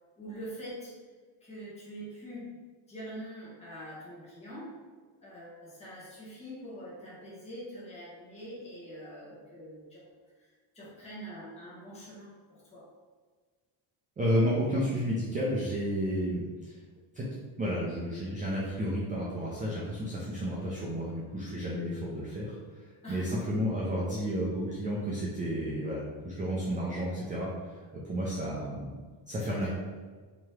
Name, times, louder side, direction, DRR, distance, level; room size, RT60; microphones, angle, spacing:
voice 1, 0.2-1.0 1.4-2.6 2.9-4.7 5.2-10.1 10.4-12.9 23.0-23.3 24.1-24.2 29.5-29.7, equal, 15° left, -9 dB, 1.1 m, -44 dB
voice 2, 14.2-16.8 17.1-17.3 17.6-28.9 29.3-29.7, equal, 20° right, -5 dB, 0.3 m, -32 dB
3.5 x 2.9 x 3.2 m, 1.5 s
cardioid pair, 170°, 48 cm